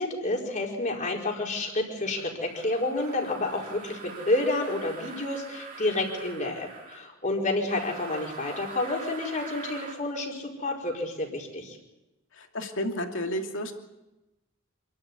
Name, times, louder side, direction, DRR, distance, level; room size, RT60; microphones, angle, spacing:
voice 1, 0.0-11.8, left 2 dB, 35° left, -1 dB, 4.9 m, -29 dB
sound 1, 2.4-7.1 7.6-10.0, right 4 dB, 40° right, 3.1 m, -43 dB
voice 2, 12.3-13.7, equal, 60° left, 3 dB, 2.7 m, -31 dB
27.5 x 13.0 x 9.8 m, 1.0 s
head